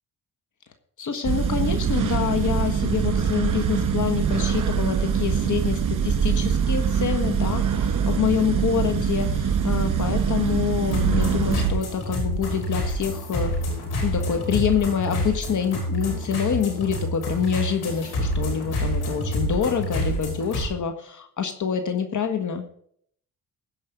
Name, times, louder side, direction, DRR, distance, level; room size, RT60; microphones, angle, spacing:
voice 1, 1.0-13.5 14.0-22.6, left 7 dB, 55° left, 6 dB, 1.5 m, -26 dB
sound 1, 1.2-11.7, right 7 dB, 55° right, 1.8 m, -23 dB
sound 2, 10.9-20.6, equal, 85° left, 5.7 m, -27 dB
16.5 x 5.5 x 6.8 m, 0.66 s
cardioid pair, 85°, 37 cm